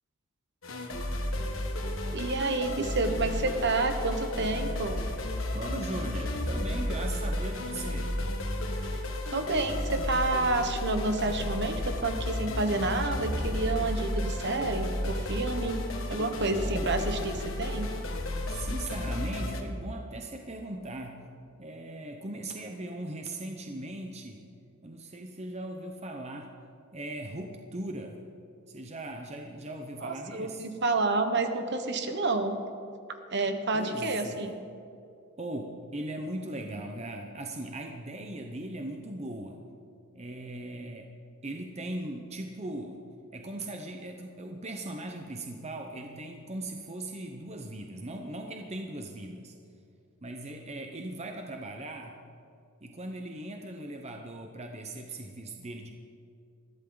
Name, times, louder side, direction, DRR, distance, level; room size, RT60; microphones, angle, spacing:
sound 1, 0.6-19.6, left 1 dB, 60° left, 1.7 m, -33 dB
voice 1, 2.1-5.0 9.3-15.8 16.1-17.9 30.0-32.5 33.3-34.5, right 3 dB, 50° right, 7 dB, 1.2 m, -29 dB
voice 2, 5.5-8.2 16.6-17.0 18.5-21.3 21.6-24.5 24.8-26.6 26.9-28.2 28.7-30.7 33.7-34.5 35.4-39.6 40.1-41.1 41.4-43.0 43.3-49.5 50.2-52.2 52.8-55.9, right 1 dB, 30° right, 3 dB, 0.9 m, -39 dB
21.0 x 15.0 x 4.0 m, 2.4 s
head